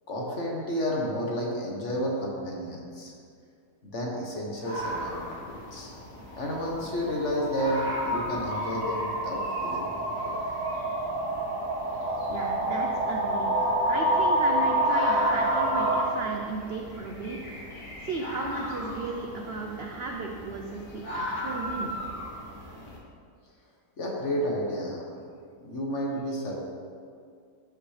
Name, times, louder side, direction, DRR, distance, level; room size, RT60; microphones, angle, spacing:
voice 1, 0.1-3.1 3.8-5.9 6.3-9.9 10.2-10.4 24.0-25.2 25.6-26.6, equal, 50° left, -2 dB, 1.4 m, -31 dB
sound 1, 4.0-4.2 6.3-16.0, right 1 dB, 40° right, 1.7 m, -28 dB
sound 2, 4.6-23.0, equal, 65° left, 2.2 m, -38 dB
voice 2, 12.3-17.4 18.0-21.9, right 3 dB, 65° right, 1 dB, 0.6 m, -35 dB
13.0 x 5.9 x 3.3 m, 2.3 s
omnidirectional pair, 1.8 m